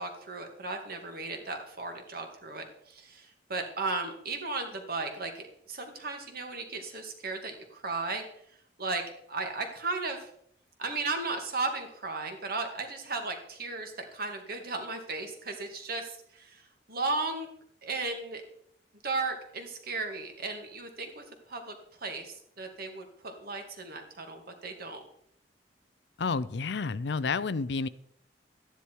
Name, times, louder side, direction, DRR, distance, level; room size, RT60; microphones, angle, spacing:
voice 1, 0.0-8.3 8.8-9.0 9.3-10.3 10.8-17.5 17.8-18.4 19.0-25.0, right 3 dB, 55° right, 5 dB, 2.1 m, -35 dB
voice 2, 26.2-27.9, left 4 dB, 65° left, 16 dB, 0.5 m, -30 dB
13.0 x 10.0 x 4.6 m, 0.69 s
head